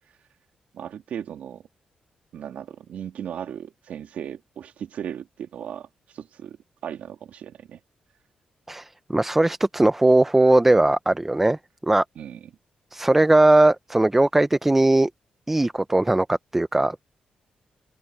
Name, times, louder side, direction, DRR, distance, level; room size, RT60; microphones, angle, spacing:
voice 1, 0.7-1.6 2.3-6.6 6.8-7.8 12.1-12.5, right 9 dB, 75° right, 3.3 m, -36 dB
voice 2, 8.7-12.0 12.9-15.1 15.5-17.0, right 2 dB, 10° right, 0.5 m, -19 dB
open air
cardioid pair, 130°, 3 cm